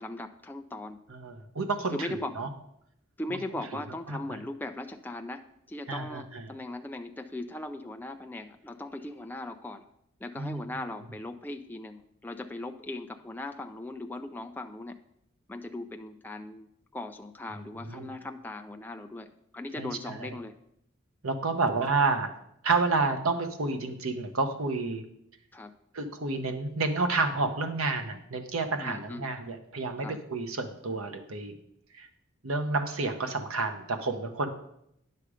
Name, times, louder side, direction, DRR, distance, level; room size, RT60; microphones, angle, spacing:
voice 1, 0.0-1.0 1.9-2.4 3.2-9.8 10.2-15.0 15.5-16.7 16.9-20.5 25.5-25.7 28.8-29.3 30.0-30.2, left 2 dB, 10° left, 5 dB, 0.4 m, -39 dB
voice 2, 1.1-2.5 4.1-4.4 5.9-6.4 10.4-10.6 17.8-18.1 19.8-20.3 21.2-22.3 22.6-25.0 25.9-31.5 32.0-32.1 32.4-34.5, right 3 dB, 85° right, 6 dB, 1.0 m, -30 dB
9.7 x 6.7 x 5.0 m, 0.77 s
head